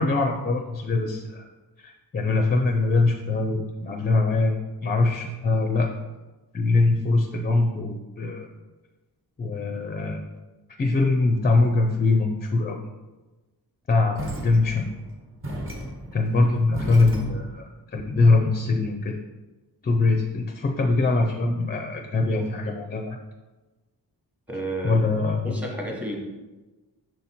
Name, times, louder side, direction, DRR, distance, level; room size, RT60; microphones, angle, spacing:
voice 1, 0.0-1.5 1.8-4.6 4.8-5.9 6.5-8.5 9.4-10.2 10.8-12.8 13.9-14.9 16.1-19.2 19.8-23.2 24.8-25.6, left 3 dB, 25° left, 3 dB, 0.4 m, -23 dB
sound 1, 14.2-17.7, equal, 30° right, 1.2 m, -35 dB
voice 2, 24.5-25.0 25.4-26.2, right 1 dB, 5° right, 0 dB, 1.0 m, -31 dB
6.4 x 4.1 x 4.2 m, 1.2 s
wide cardioid pair, 175°, 39 cm